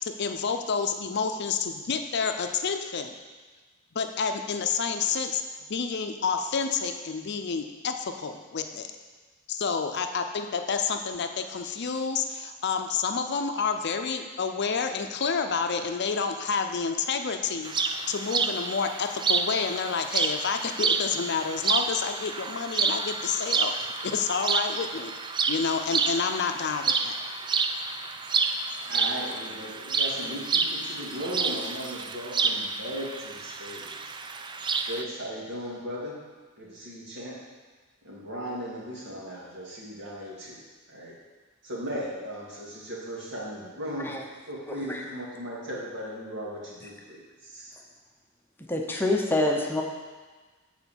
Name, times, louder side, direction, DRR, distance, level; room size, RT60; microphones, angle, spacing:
voice 1, 0.0-3.1 3.9-5.4 5.7-8.9 9.5-25.1 25.5-27.2, left 5 dB, 55° left, 6 dB, 0.6 m, -29 dB
sound 1, 17.6-35.0, right 4 dB, 25° right, 0.4 m, -29 dB
voice 2, 28.9-34.0 34.9-36.2 36.6-37.4 38.0-40.6 40.9-41.2 41.6-44.2 44.5-47.7, equal, 65° right, -4 dB, 2.2 m, -37 dB
voice 3, 44.7-45.0 48.7-49.8, left 1 dB, 10° left, 0 dB, 0.7 m, -26 dB
8.3 x 4.4 x 7.1 m, 1.3 s
head